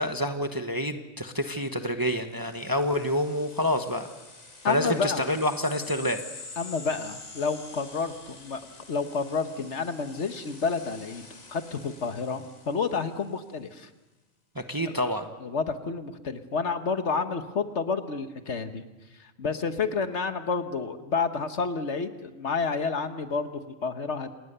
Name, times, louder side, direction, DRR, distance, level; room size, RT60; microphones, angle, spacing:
voice 1, 0.0-4.1 4.6-6.2 14.5-15.3, left 1 dB, 15° right, 6 dB, 1.1 m, -28 dB
sound 1, 2.3-13.4, left 3 dB, 85° left, 3.6 m, -47 dB
voice 2, 4.6-5.3 6.6-8.6 8.9-13.9 15.4-18.8 19.2-24.3, left 5 dB, 60° left, 9 dB, 1.5 m, -30 dB
28.5 x 20.0 x 6.8 m, 1.1 s
omnidirectional pair, 1.4 m